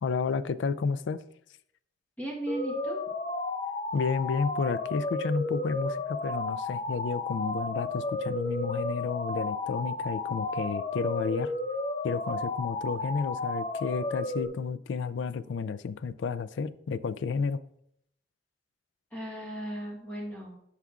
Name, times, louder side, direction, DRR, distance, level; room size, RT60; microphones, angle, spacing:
voice 1, 0.0-1.2 3.9-11.5 12.0-17.6, left 5 dB, 90° left, 15 dB, 0.4 m, -31 dB
voice 2, 2.2-3.0 19.1-20.5, right 1 dB, 10° left, -4 dB, 1.2 m, -36 dB
sound 1, 2.5-14.5, left 2 dB, 35° left, 0.6 m, -33 dB
11.5 x 5.8 x 2.4 m, 0.75 s
head